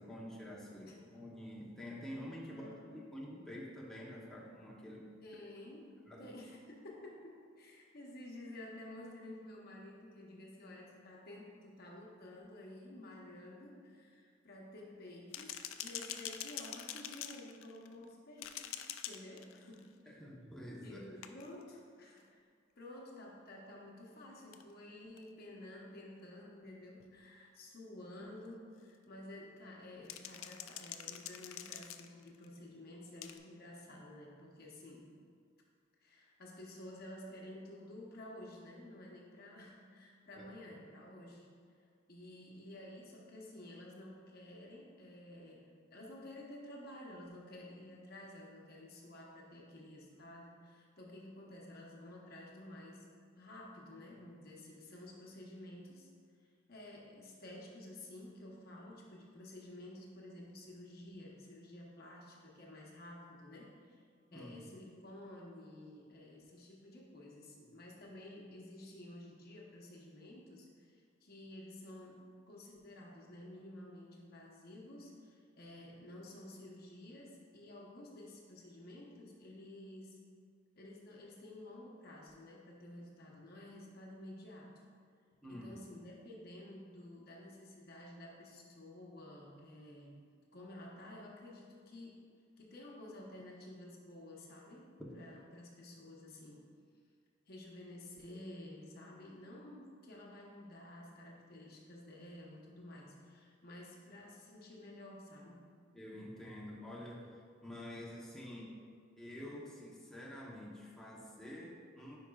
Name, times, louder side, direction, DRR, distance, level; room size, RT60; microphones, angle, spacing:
voice 1, 0.0-5.0 6.0-6.3 20.1-21.1 40.3-40.8 64.3-64.8 85.4-85.8 105.9-108.7 109.2-112.2, left 1 dB, 5° left, -6 dB, 0.8 m, -48 dB
voice 2, 2.5-2.8 5.2-5.9 6.2-18.8 19.0-20.2 20.8-22.4 22.8-35.1 36.0-41.5 42.1-53.1 53.4-56.1 56.7-64.0 64.3-80.2 80.8-84.8 85.5-90.2 90.5-92.2 92.6-96.7 97.5-105.7, left 1 dB, 50° left, -2 dB, 0.9 m, -52 dB
sound 1, 15.3-18.0 18.4-19.9 21.2-21.6 24.5-24.6 25.2-25.3 27.0-27.1 30.1-32.5 33.2-33.4, left 10 dB, 90° left, 0.4 m, -45 dB
9.7 x 4.8 x 2.3 m, 2.1 s
head